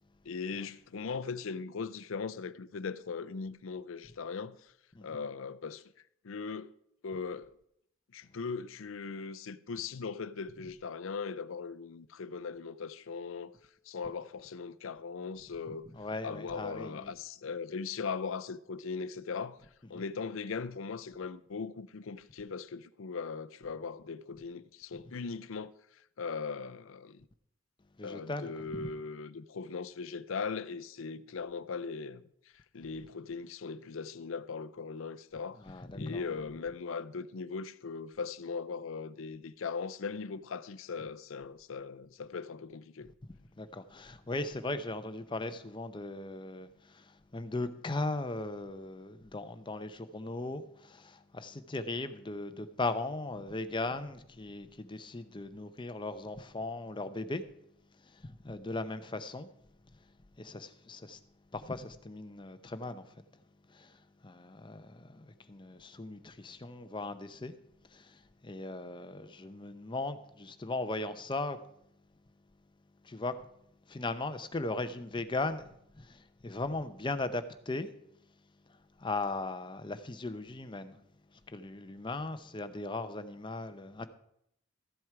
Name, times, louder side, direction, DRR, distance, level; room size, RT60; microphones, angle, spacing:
voice 1, 0.2-4.7 5.0-5.8 6.2-6.7 7.0-7.5 8.1-13.5 13.9-15.9 16.2-19.6 19.9-25.7 26.2-27.3 28.0-32.2 32.7-35.6 35.9-43.1, left 5 dB, 70° left, 0.5 m, -39 dB
voice 2, 15.9-17.1 19.9-20.0 28.0-28.5 35.7-36.2 43.6-46.7 46.9-47.0 47.3-57.4 58.2-59.5 60.4-61.2 61.5-63.0 63.7-63.9 64.2-67.5 67.9-68.2 68.4-71.6 73.0-73.3 73.9-75.7 76.0-77.9 79.0-81.0 81.5-84.1, left 2 dB, 25° left, 0.6 m, -38 dB
14.0 x 7.7 x 4.8 m
head